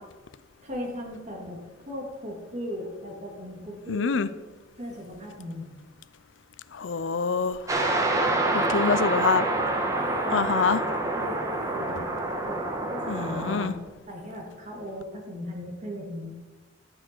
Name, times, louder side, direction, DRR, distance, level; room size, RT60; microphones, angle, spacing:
voice 1, 0.6-4.3 4.8-5.7 8.5-8.8 9.9-10.5 11.1-12.1 12.4-13.8 14.1-16.3, left 1 dB, 40° right, -1 dB, 2.7 m, -37 dB
voice 2, 3.9-4.3 6.7-7.6 8.5-9.5 10.3-10.8 13.1-13.7, left 5 dB, 80° left, 15 dB, 0.5 m, -25 dB
sound 1, 7.7-13.7, right 2 dB, 15° right, 1.5 m, -27 dB
12.0 x 8.9 x 4.6 m, 1.2 s
head